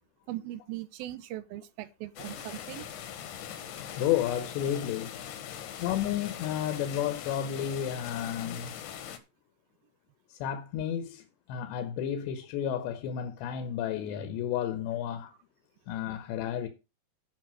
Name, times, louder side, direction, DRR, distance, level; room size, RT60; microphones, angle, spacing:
voice 1, 0.3-2.9, right 15 dB, 80° right, 2.2 m, -39 dB
sound 1, 2.2-9.2, left 9 dB, 65° left, 2.1 m, -41 dB
voice 2, 4.0-5.1 5.8-8.7 10.3-15.3 15.9-16.7, left 10 dB, 85° left, 3.3 m, -32 dB
10.5 x 5.6 x 6.2 m
omnidirectional pair, 4.9 m